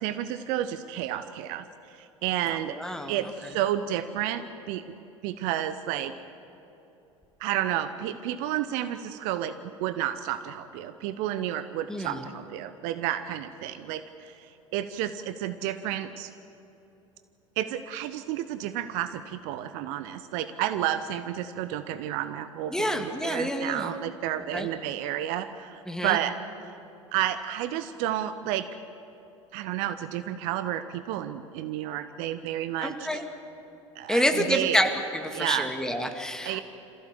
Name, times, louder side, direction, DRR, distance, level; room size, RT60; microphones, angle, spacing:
voice 1, 0.0-1.6 2.2-2.8 3.1-4.8 5.2-6.1 7.4-9.5 9.8-16.3 17.6-26.4 26.6-26.7 27.1-28.6 29.5-33.2 34.0-34.8 35.3-35.7 36.4-36.6, right 12 dB, 50° right, 11 dB, 0.9 m, -31 dB
voice 2, 2.5-3.2 11.9-12.2 22.7-23.9 24.5-24.7 25.9-26.2 32.8-33.2 34.1-36.6, equal, 5° left, 4 dB, 2.1 m, -28 dB
27.0 x 15.5 x 7.5 m, 3.0 s
figure-of-eight pair, 75°, 16 cm